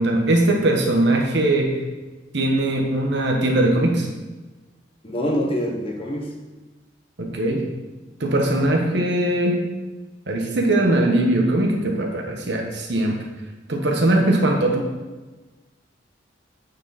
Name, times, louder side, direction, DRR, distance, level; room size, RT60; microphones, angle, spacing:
voice 1, 0.0-1.7 2.3-4.1 7.2-7.6 8.2-9.6 10.3-13.1 13.7-14.9, right 1 dB, 65° right, 1 dB, 1.3 m, -20 dB
voice 2, 5.0-6.3, equal, 30° left, -1 dB, 1.2 m, -25 dB
9.0 x 4.8 x 4.2 m, 1.2 s
head